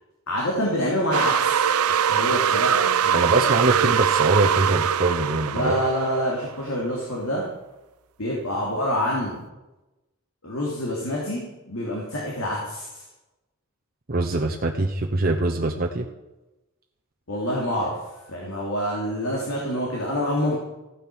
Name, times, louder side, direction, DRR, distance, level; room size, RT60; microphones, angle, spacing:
voice 1, 0.3-3.9 5.5-7.4 8.2-9.4 10.4-13.0 17.3-17.9 18.3-20.5, equal, 75° left, -3 dB, 3.1 m, -27 dB
sound 1, 1.1-6.4, right 8 dB, 85° right, 0.5 m, -22 dB
voice 2, 3.1-5.8 14.1-16.1, right 2 dB, 40° right, 1 dB, 0.9 m, -23 dB
15.0 x 9.0 x 6.3 m, 1.0 s
head